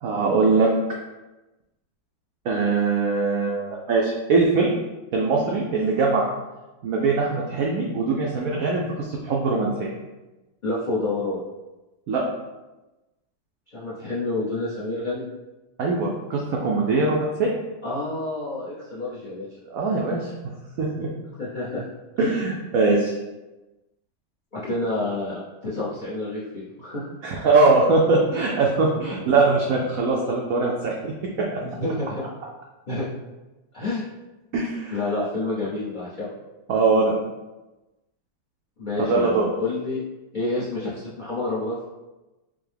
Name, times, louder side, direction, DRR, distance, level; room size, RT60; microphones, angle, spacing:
voice 1, 0.0-0.7 2.5-4.7 5.1-6.3 6.8-9.9 12.1-12.2 15.8-17.5 19.7-20.3 20.8-21.1 22.2-23.1 27.2-31.1 34.5-35.0 36.7-37.1 39.1-39.5, right 3 dB, 85° right, -2 dB, 0.7 m, -21 dB
voice 2, 10.6-11.4 13.7-15.3 17.8-19.5 21.4-21.8 22.2-22.4 24.5-27.1 31.6-32.2 32.9-33.1 33.7-34.0 34.9-36.3 38.8-40.0 40.3-41.9, left 2 dB, 85° left, -8 dB, 0.4 m, -28 dB
5.5 x 2.0 x 3.3 m, 1.1 s
omnidirectional pair, 2.1 m